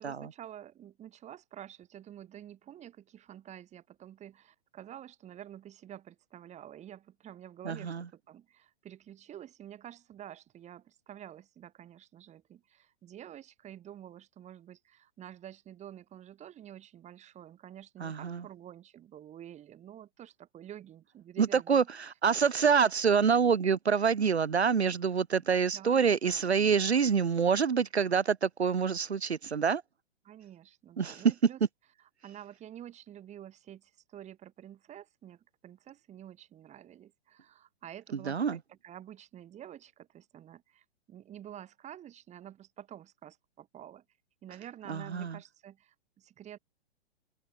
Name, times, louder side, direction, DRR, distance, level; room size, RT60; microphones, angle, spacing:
voice 1, 0.0-21.9 25.7-26.5 30.2-31.6 32.2-44.0 44.4-46.6, right 11 dB, 20° right, 6.0 m, -49 dB
voice 2, 7.6-8.0 18.0-18.4 21.4-29.8 31.0-31.2 38.2-38.6 44.9-45.4, right 6 dB, 80° right, 1.1 m, -27 dB
figure-of-eight pair, 115°, 32 cm